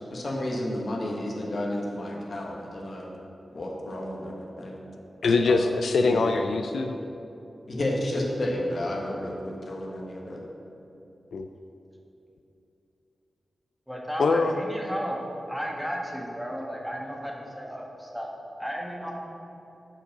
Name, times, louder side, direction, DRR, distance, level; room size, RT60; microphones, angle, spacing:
voice 1, 0.1-3.1 3.5-4.8 5.4-5.6 6.0-6.2 7.7-10.4, left 1 dB, 60° left, -1 dB, 1.3 m, -31 dB
voice 2, 5.2-7.0 11.3-11.5 14.2-14.5, left 3 dB, 80° left, 6 dB, 0.3 m, -23 dB
voice 3, 13.9-15.2 15.5-18.3 18.6-19.2, equal, ahead, -2 dB, 1.4 m, -34 dB
6.7 x 5.3 x 5.9 m, 2.9 s
cardioid pair, 65°, 0 cm